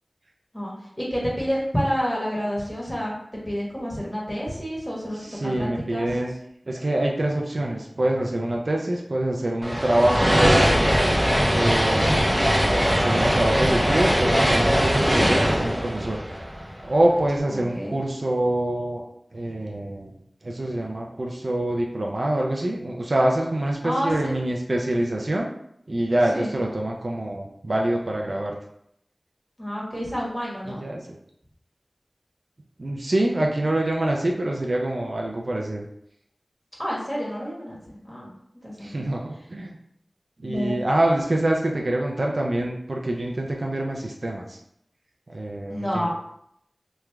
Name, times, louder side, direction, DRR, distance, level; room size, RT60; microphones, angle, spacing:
voice 1, 0.5-6.1 17.5-18.0 23.8-24.3 26.3-26.6 29.6-30.8 36.8-37.8 38.0-38.3 38.6-39.0 40.4-40.8 45.7-46.1, equal, 5° left, -5 dB, 1.3 m, -29 dB
voice 2, 5.3-6.3 6.7-10.8 11.5-12.5 12.9-16.2 16.8-19.0 19.3-20.2 20.4-25.5 25.9-28.6 30.7-31.0 32.8-35.8 38.8-39.7 40.4-44.6 45.3-46.1, right 1 dB, 70° right, -1 dB, 0.4 m, -25 dB
sound 1, 9.6-17.0, equal, 15° right, 0.6 m, -21 dB
3.1 x 2.3 x 3.4 m, 0.74 s
wide cardioid pair, 45°, 0 cm